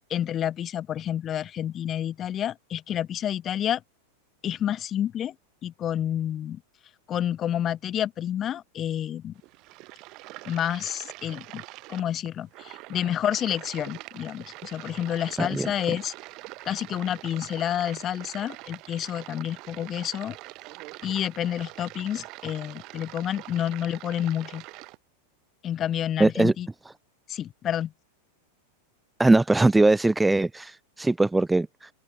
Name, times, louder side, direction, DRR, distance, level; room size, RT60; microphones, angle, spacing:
voice 1, 0.1-3.8 4.4-5.3 5.6-6.6 7.1-9.3 10.4-11.6 11.9-16.1 16.6-20.4 21.0-24.6 25.6-26.7 27.3-27.9, left 10 dB, 35° left, 3.4 m, -29 dB
sound 1, 9.4-25.0, right 22 dB, 50° right, 2.8 m, -44 dB
voice 2, 15.4-15.7 26.2-26.5 29.2-31.9, right 2 dB, 10° right, 1.0 m, -21 dB
hypercardioid pair, 95°, 0 cm